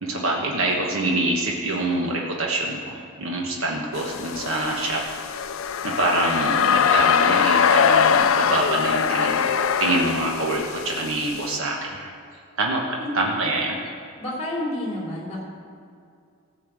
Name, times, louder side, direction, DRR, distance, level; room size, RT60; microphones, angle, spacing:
voice 1, 0.0-5.3 5.8-9.5 9.8-12.1 12.6-13.8, right 2 dB, 70° right, -1 dB, 1.3 m, -25 dB
sound 1, 4.0-11.6, left 7 dB, 70° left, 0.4 m, -22 dB
voice 2, 14.2-15.4, left 1 dB, 30° left, -3 dB, 2.8 m, -29 dB
14.5 x 5.6 x 8.0 m, 2.3 s
head